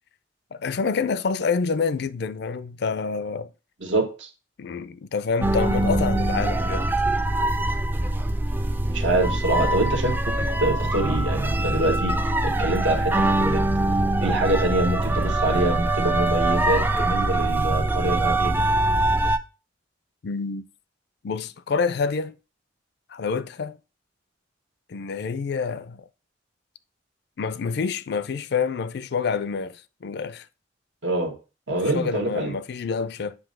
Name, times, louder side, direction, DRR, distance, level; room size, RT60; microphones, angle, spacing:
voice 1, 0.5-3.5 4.6-6.9 20.2-20.7 21.2-22.3 23.1-23.8 24.9-26.0 27.4-30.5 31.9-33.4, left 5 dB, 65° left, 0.4 m, -27 dB
voice 2, 3.8-4.3 8.9-12.2 12.4-13.6 14.2-18.7 31.0-31.3 31.7-32.5, right 2 dB, 85° right, 1.4 m, -25 dB
sound 1, 5.4-19.4, right 1 dB, 10° right, 0.3 m, -23 dB
7.9 x 2.7 x 5.2 m
head